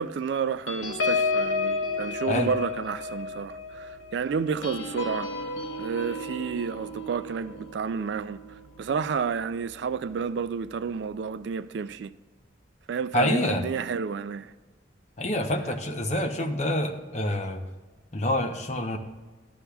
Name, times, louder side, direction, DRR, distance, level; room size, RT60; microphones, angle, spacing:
voice 1, 0.0-5.3 5.8-12.1 12.9-14.5, right 6 dB, 65° right, 0.3 m, -30 dB
sound 1, 0.7-9.6 10.0-10.2 10.5-10.8, left 3 dB, 85° left, 1.0 m, -32 dB
voice 2, 13.1-13.7 15.2-17.6 18.1-19.0, left 1 dB, 35° left, 0.8 m, -27 dB
13.5 x 11.5 x 2.3 m
head